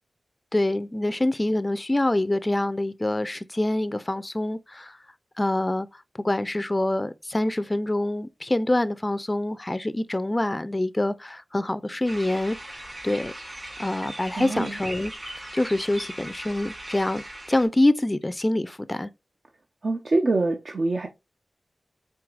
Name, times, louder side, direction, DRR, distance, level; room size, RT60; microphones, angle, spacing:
voice 1, 0.5-5.0 5.4-12.8 13.0-13.3 13.8-15.1 15.5-19.1, left 1 dB, 25° left, 0.3 m, -25 dB
sound 1, 12.0-17.7, right 1 dB, 35° right, 2.3 m, -39 dB
voice 2, 14.3-14.8 19.8-21.1, right 2 dB, 60° right, 0.6 m, -25 dB
4.6 x 3.4 x 2.4 m
cardioid pair, 45°, 0 cm